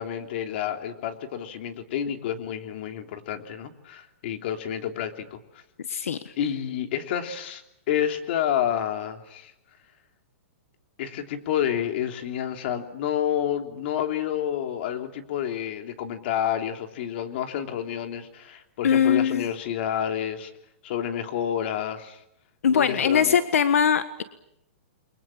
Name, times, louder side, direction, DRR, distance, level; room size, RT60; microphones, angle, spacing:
voice 1, 0.0-5.4 6.4-9.5 11.0-20.5 20.8-22.2 22.7-23.4, left 9 dB, 50° left, 5 dB, 3.3 m, -29 dB
voice 2, 5.9-6.3 18.8-19.5 22.6-24.2, left 8 dB, 85° left, 11 dB, 1.5 m, -21 dB
30.0 x 23.5 x 7.3 m, 0.80 s
hypercardioid pair, 155°, 7 cm